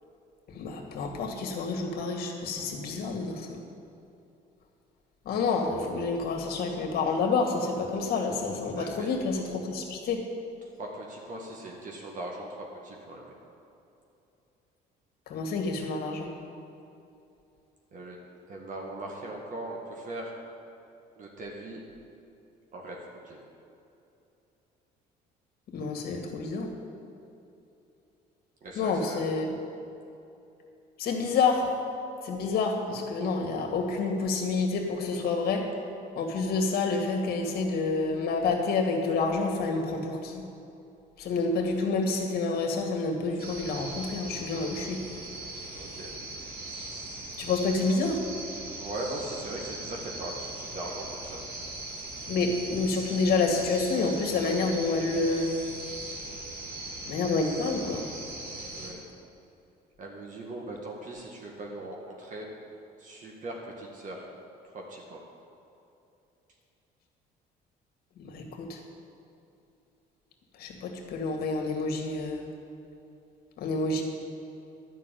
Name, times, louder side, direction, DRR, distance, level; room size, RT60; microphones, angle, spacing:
voice 1, 0.5-3.6 5.3-10.2 15.3-16.3 25.7-26.7 28.8-29.6 31.0-31.7 32.2-35.7 36.2-40.4 41.2-45.0 47.4-48.2 52.3-55.5 57.1-58.1 68.2-68.8 70.6-72.4 73.6-74.0, left 3 dB, 65° left, 2 dB, 2.0 m, -28 dB
voice 2, 8.8-9.1 10.8-12.5 12.8-13.3 17.9-18.2 18.5-20.3 21.2-21.8 22.7-23.4 28.6-29.2 45.7-46.1 48.8-51.4 58.7-59.0 60.0-62.5 63.0-64.3 64.7-65.2, right 1 dB, 50° right, -1 dB, 1.9 m, -39 dB
sound 1, 43.4-58.9, right 2 dB, 65° right, 2.7 m, -40 dB
11.0 x 6.2 x 9.1 m, 2.8 s
cardioid pair, 110°, 17 cm